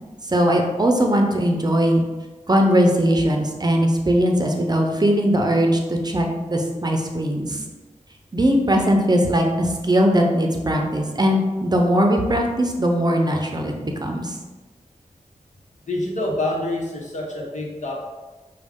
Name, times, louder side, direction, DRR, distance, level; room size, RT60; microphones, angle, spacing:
voice 1, 0.3-2.0 2.5-7.6 8.3-14.4, equal, 30° right, 2 dB, 0.6 m, -20 dB
voice 2, 15.9-18.0, left 1 dB, 65° left, -2 dB, 1.1 m, -26 dB
6.1 x 2.4 x 3.6 m, 1.2 s
wide cardioid pair, 75°, 13 cm